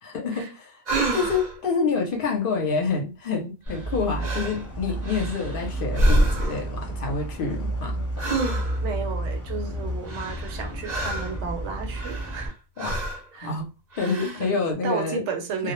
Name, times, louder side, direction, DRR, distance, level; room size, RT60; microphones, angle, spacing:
voice 1, 0.0-0.8 1.1-8.0 12.8-13.0 13.4-13.7 14.0-15.2 15.6-15.7, left 4 dB, 55° left, 0.8 m, -27 dB
sound 1, 0.9-1.6 3.7-3.9 4.2-4.6 5.0-5.6 5.9-6.7 8.2-8.9 10.1-11.4 11.9-12.5 12.8-13.3 13.9-14.5, right 1 dB, 45° right, 0.6 m, -27 dB
sound 2, 3.7-12.5, right 1 dB, 15° left, 0.8 m, -31 dB
voice 2, 8.8-12.6 13.3-13.5 14.4-15.7, right 5 dB, 90° right, 1.0 m, -33 dB
2.2 x 2.0 x 2.9 m
omnidirectional pair, 1.2 m